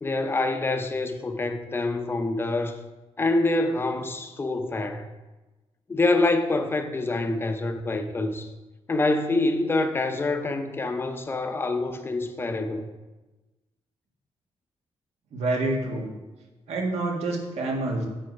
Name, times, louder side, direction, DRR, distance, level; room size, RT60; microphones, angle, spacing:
voice 1, 0.0-2.8 3.2-5.1 5.9-8.5 8.9-12.9, left 2 dB, 20° left, 7 dB, 0.7 m, -26 dB
voice 2, 15.3-16.1 16.7-18.1, right 2 dB, 75° right, 0 dB, 1.6 m, -27 dB
7.7 x 4.7 x 5.2 m, 1.1 s
cardioid pair, 130°, 11 cm